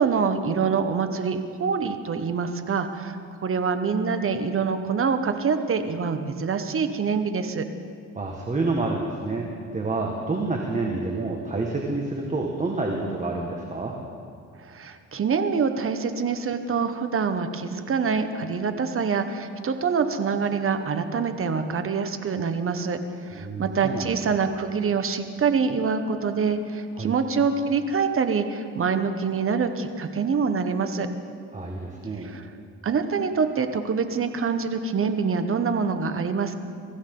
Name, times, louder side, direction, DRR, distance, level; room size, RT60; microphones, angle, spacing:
voice 1, 0.0-3.2 3.4-7.6 14.7-23.0 23.3-31.1 32.2-32.5 32.8-36.5, right 5 dB, 45° right, 8 dB, 1.3 m, -25 dB
voice 2, 8.1-9.5 9.7-13.9 23.3-24.1 27.0-27.1 31.5-32.3, right 3 dB, 25° right, 0 dB, 1.8 m, -28 dB
23.5 x 14.5 x 3.9 m, 2.3 s
cardioid pair, 90°, 30 cm